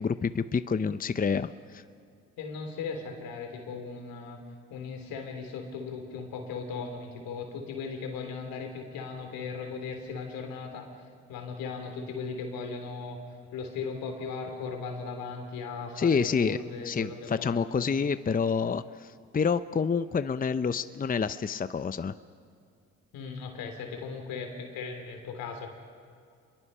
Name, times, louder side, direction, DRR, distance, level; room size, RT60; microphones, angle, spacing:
voice 1, 0.0-1.8 16.0-16.6 16.8-22.1, left 6 dB, 25° left, 13 dB, 0.7 m, -28 dB
voice 2, 2.4-4.4 4.7-10.9 11.3-13.2 13.5-17.9 23.1-25.7, left 5 dB, 80° left, 4 dB, 3.4 m, -37 dB
27.0 x 22.5 x 5.6 m, 2.2 s
supercardioid pair, 55°, 34 cm